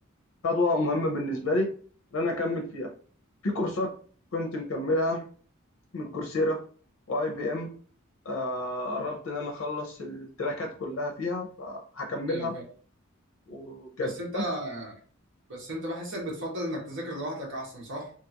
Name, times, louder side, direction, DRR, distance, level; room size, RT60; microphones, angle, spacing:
voice 1, 0.4-1.7 2.1-2.9 3.4-3.9 4.3-5.3 5.9-6.6 7.1-7.7 8.2-12.5 13.5-14.4, left 2 dB, 85° left, 3 dB, 0.5 m, -29 dB
voice 2, 12.3-12.6 14.0-14.9 15.5-18.1, equal, 60° right, -2 dB, 1.2 m, -35 dB
2.8 x 2.4 x 2.8 m, 0.43 s
head